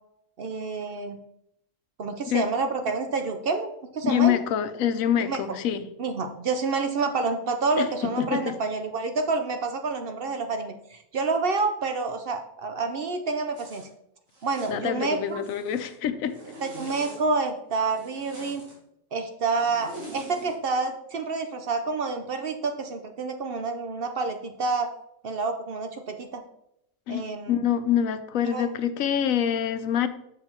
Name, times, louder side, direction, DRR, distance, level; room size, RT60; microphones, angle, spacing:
voice 1, 0.4-1.2 2.0-4.4 5.2-5.4 6.0-13.9 14.4-15.5 16.6-18.6 19.1-24.9 25.2-26.4 27.1-27.6 28.5-28.7, right 4 dB, 55° right, 6 dB, 0.8 m, -28 dB
voice 2, 4.0-5.8 7.8-8.6 14.7-16.4 27.1-30.1, left 9 dB, 90° left, 11 dB, 1.1 m, -26 dB
Zipper (clothing), 13.5-13.9 14.3-14.8 15.2-16.0 16.3-17.2 17.9-18.7 19.6-20.5, right 1 dB, 80° right, 2.5 m, -44 dB
6.4 x 5.9 x 4.3 m, 0.77 s
omnidirectional pair, 1.4 m